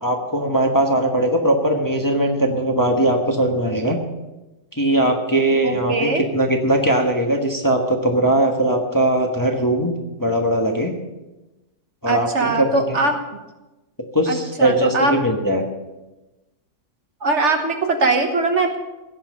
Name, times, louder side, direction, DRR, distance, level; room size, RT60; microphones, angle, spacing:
voice 1, 0.0-4.0 4.8-9.9 10.2-10.9 12.0-13.0 14.1-15.6, right 1 dB, 15° left, 2 dB, 1.2 m, -20 dB
voice 2, 5.6-6.2 12.1-13.2 14.3-15.1 17.2-18.8, right 3 dB, 50° right, 5 dB, 1.4 m, -21 dB
16.5 x 5.8 x 8.4 m, 1.1 s
omnidirectional pair, 1.6 m